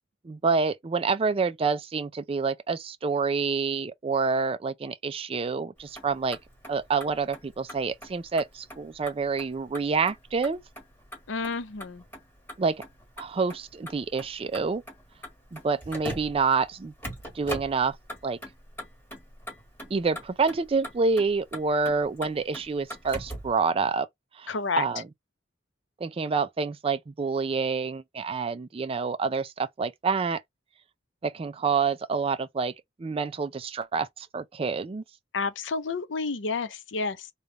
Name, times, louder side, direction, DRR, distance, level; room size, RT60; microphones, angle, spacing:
voice 1, 0.2-6.4 6.7-10.6 12.6-12.8 13.2-14.8 15.5-16.9 17.3-18.0 18.2-18.4 19.9-24.1 24.4-25.1 26.0-30.4 31.2-32.7 33.0-35.0, right 4 dB, 30° right, 0.4 m, -27 dB
Motor vehicle (road), 5.8-23.6, equal, 10° left, 1.6 m, -43 dB
voice 2, 11.3-12.0 24.5-24.8 35.3-37.2, left 4 dB, 90° left, 0.6 m, -30 dB
3.3 x 2.3 x 3.9 m
head